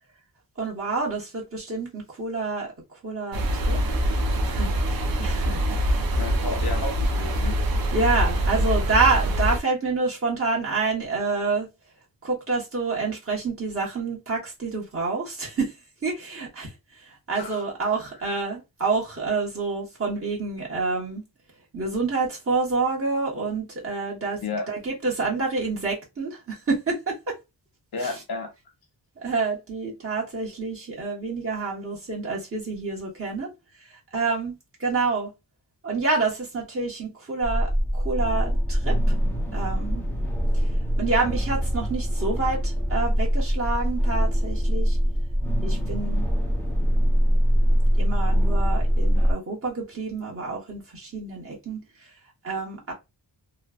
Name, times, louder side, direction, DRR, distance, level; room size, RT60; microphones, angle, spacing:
voice 1, 0.6-2.7 3.0-3.8 4.4-5.6 5.9-6.1 7.9-11.7 12.2-15.7 16.0-16.7 17.3-21.2 21.7-24.4 24.7-27.3 28.0-28.1 29.2-33.5 34.1-35.3 35.8-38.9 39.5-40.0 41.0-45.0 45.6-46.3 48.0-51.8 52.4-52.9, right 4 dB, 30° right, 1.1 m, -28 dB
sound 1, 3.3-9.6, equal, 60° right, 0.6 m, -24 dB
voice 2, 6.2-7.6 17.3-17.6 24.4-24.7 27.9-28.5, left 3 dB, 60° left, 0.7 m, -32 dB
sound 2, 37.4-49.3, equal, 5° left, 0.5 m, -23 dB
3.1 x 2.1 x 2.3 m
wide cardioid pair, 165°, 42 cm